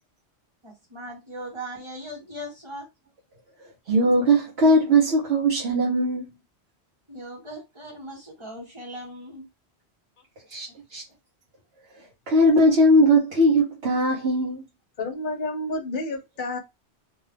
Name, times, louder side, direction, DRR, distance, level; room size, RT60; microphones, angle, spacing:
voice 1, 0.6-2.9 7.1-9.4, equal, 25° right, 0.9 m, -39 dB
voice 2, 3.9-6.3 10.5-11.0 12.3-14.6, right 1 dB, 70° right, 1.0 m, -19 dB
voice 3, 15.0-16.6, left 2 dB, 50° left, 0.9 m, -30 dB
2.7 x 2.3 x 3.3 m
omnidirectional pair, 1.1 m